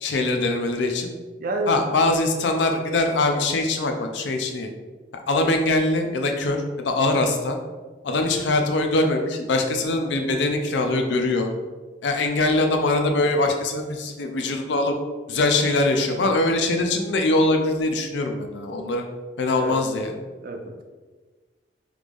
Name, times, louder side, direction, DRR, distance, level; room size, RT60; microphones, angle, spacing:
voice 1, 0.0-1.1 1.7-4.7 5.1-7.6 8.0-11.5 12.0-15.0 15.3-19.1 19.4-20.2, left 2 dB, 65° left, 4 dB, 0.5 m, -22 dB
voice 2, 1.4-1.8 19.6-19.8 20.4-20.8, right 2 dB, 50° right, 4 dB, 0.5 m, -28 dB
3.2 x 2.4 x 3.5 m, 1.3 s
head